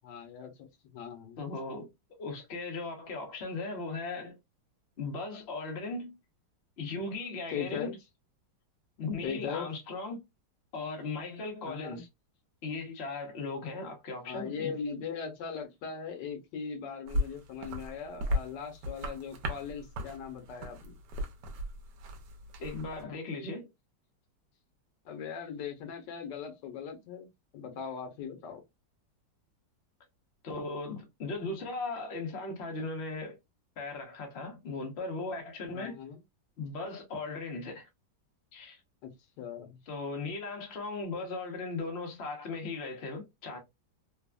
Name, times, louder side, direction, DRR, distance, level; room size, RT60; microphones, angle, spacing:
voice 1, 0.0-1.4 7.5-7.9 9.2-9.7 11.7-12.0 14.3-21.0 25.0-27.3 27.5-28.6 35.7-36.2 39.0-39.1 39.4-39.8, left 6 dB, 80° left, 1.4 m, -39 dB
voice 2, 1.4-1.9 2.2-4.4 5.0-6.2 6.8-7.9 9.0-10.2 10.7-12.1 12.6-14.8 22.6-23.7 30.4-33.4 33.8-35.9 36.6-37.9 38.5-38.8 39.9-43.6, left 3 dB, 50° left, 0.8 m, -37 dB
sound 1, 17.1-23.0, equal, 75° right, 1.2 m, -36 dB
3.3 x 2.0 x 2.2 m
omnidirectional pair, 1.9 m